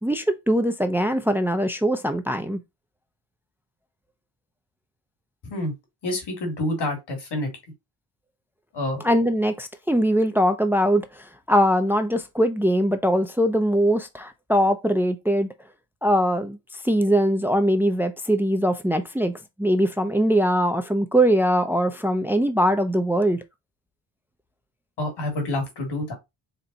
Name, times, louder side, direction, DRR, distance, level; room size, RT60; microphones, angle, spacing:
voice 1, 0.0-2.6 9.0-15.5 16.0-23.4, equal, 5° right, 0.7 m, -22 dB
voice 2, 6.0-7.5 8.7-9.0 25.0-26.1, left 1 dB, 70° left, 2.7 m, -27 dB
4.5 x 2.5 x 4.0 m
cardioid pair, 65°, 43 cm